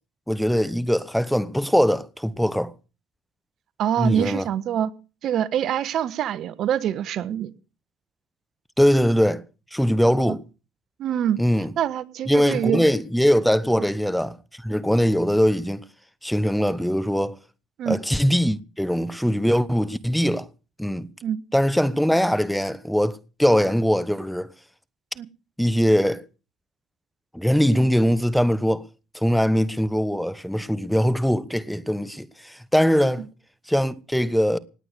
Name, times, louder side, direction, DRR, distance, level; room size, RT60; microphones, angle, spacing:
voice 1, 0.3-2.7 4.0-4.5 8.8-9.4 9.7-10.4 11.4-11.7 12.3-15.8 16.2-17.4 17.9-20.5 20.8-21.1 21.5-24.5 25.6-26.2 27.3-28.9 29.1-33.2 33.7-34.6, equal, ahead, 1.1 m, -21 dB
voice 2, 3.8-4.9 5.2-7.5 10.2-10.4 11.0-11.4 11.8-12.8 17.8-18.0 21.2-21.4 25.2-25.3, right 10 dB, 60° right, 1.2 m, -25 dB
18.5 x 9.0 x 6.7 m
supercardioid pair, 70°, 0 cm